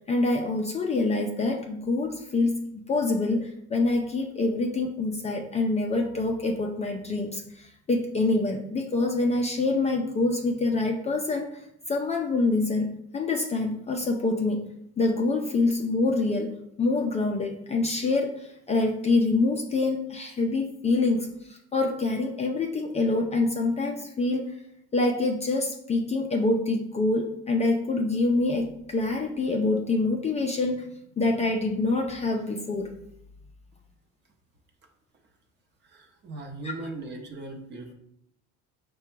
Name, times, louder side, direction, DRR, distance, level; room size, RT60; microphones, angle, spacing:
voice 1, 0.1-11.6 11.9-14.6 15.0-24.4 24.9-30.9 31.2-32.9, left 3 dB, 25° left, 2 dB, 0.4 m, -26 dB
voice 2, 35.8-37.9, right 2 dB, 35° right, 3 dB, 0.7 m, -39 dB
4.7 x 2.2 x 4.4 m, 0.74 s
cardioid pair, 130°, 29 cm